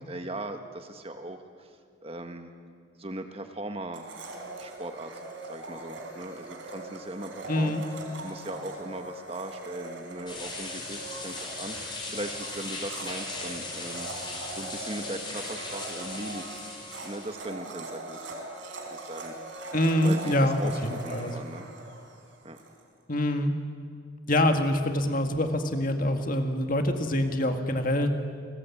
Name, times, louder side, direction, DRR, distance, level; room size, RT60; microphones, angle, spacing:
voice 1, 0.0-2.5 3.0-4.1 4.6-5.2 5.5-7.8 8.2-16.6 17.0-18.2 18.9-19.3 20.0-21.7 22.4-22.6, right 1 dB, 30° right, 6 dB, 1.6 m, -39 dB
Domestic sounds home sounds, 3.9-22.7, right 2 dB, 65° right, 4.2 m, -41 dB
voice 2, 7.5-7.8 19.7-21.3 23.1-23.5 24.3-28.1, left 1 dB, 40° left, 6 dB, 2.0 m, -25 dB
sound 1, 10.3-17.3, left 3 dB, 25° left, 5.3 m, -38 dB
29.5 x 20.0 x 8.6 m, 2.1 s
head